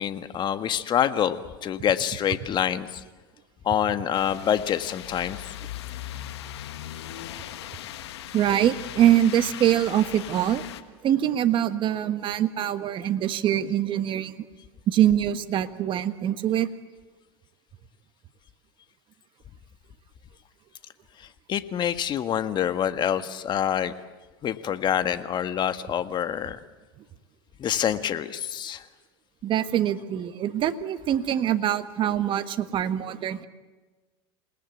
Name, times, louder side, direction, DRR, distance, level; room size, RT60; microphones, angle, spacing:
voice 1, 0.0-3.0 3.6-5.4 21.2-23.9 24.4-26.6 27.6-28.8, left 9 dB, 35° left, 11 dB, 1.6 m, -26 dB
sound 1, 4.1-10.8, left 12 dB, 85° left, 1.7 m, -39 dB
voice 2, 8.3-10.6 11.0-14.3 14.9-16.7 29.4-33.5, right 11 dB, 40° right, 10 dB, 1.5 m, -24 dB
28.0 x 19.5 x 8.4 m, 1.3 s
supercardioid pair, 120°, 13 cm